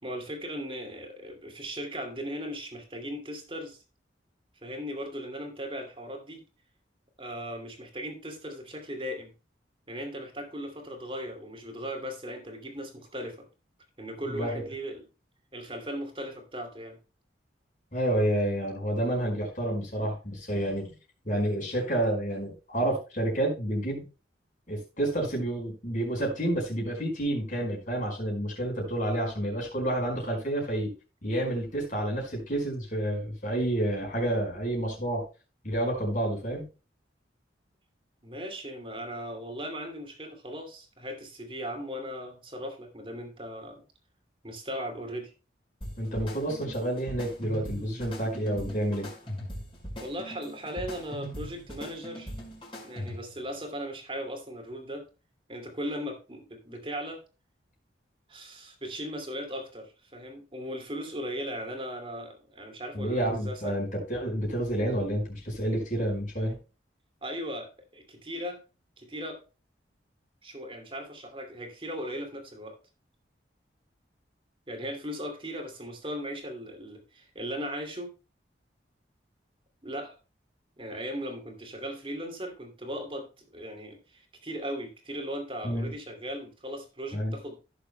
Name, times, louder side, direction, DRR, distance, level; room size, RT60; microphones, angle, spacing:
voice 1, 0.0-3.8 4.6-6.4 7.2-9.3 9.9-13.5 14.0-15.0 15.5-17.0 38.2-43.8 44.4-45.3 50.0-52.3 52.8-55.0 55.5-57.2 58.3-63.7 67.2-68.6 69.0-69.4 70.4-72.8 74.7-78.1 79.8-80.2 80.8-87.6, equal, 30° right, 4 dB, 2.4 m, -38 dB
voice 2, 14.2-14.6 17.9-20.9 21.2-24.0 24.7-30.9 31.2-35.2 35.6-36.6 46.0-49.1 62.9-66.6 85.6-85.9 87.1-87.3, right 1 dB, 45° left, -1 dB, 4.9 m, -29 dB
sound 1, 45.8-53.4, equal, 30° left, 5.0 m, -40 dB
16.5 x 6.9 x 2.2 m, 0.31 s
head